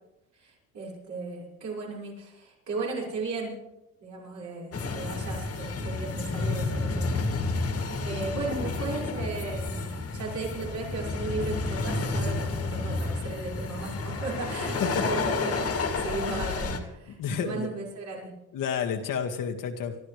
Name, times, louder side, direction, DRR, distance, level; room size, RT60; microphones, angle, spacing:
voice 1, 0.4-3.5 4.0-7.4 7.6-18.3, right 3 dB, 55° right, -3 dB, 5.5 m, -36 dB
sound 1, 4.7-16.8, left 3 dB, 45° left, 2.1 m, -30 dB
voice 2, 14.8-15.1 17.2-17.7 18.5-20.0, left 7 dB, 65° left, 4 dB, 1.9 m, -30 dB
26.0 x 12.5 x 3.3 m, 0.93 s
cardioid pair, 120°, 34 cm